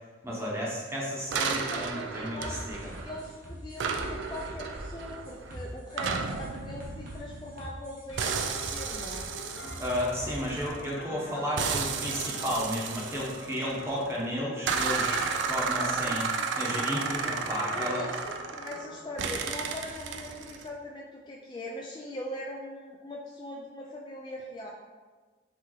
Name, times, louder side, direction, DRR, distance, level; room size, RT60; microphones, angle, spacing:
voice 1, 0.2-2.9 9.8-18.0, equal, 15° right, -4 dB, 0.9 m, -33 dB
sound 1, 1.3-3.4 3.8-7.8 8.2-10.9 11.6-14.0 14.7-18.9 19.2-20.7, right 5 dB, 80° right, 0.4 m, -33 dB
voice 2, 1.7-9.3 15.8-15.9 17.7-24.7, left 1 dB, 25° left, -2 dB, 0.3 m, -41 dB
sound 2, 2.4-10.7, equal, 45° right, 1.0 m, -43 dB
sound 3, 8.2-19.5, left 2 dB, 75° left, 0.5 m, -44 dB
6.0 x 2.8 x 3.0 m, 1.3 s
head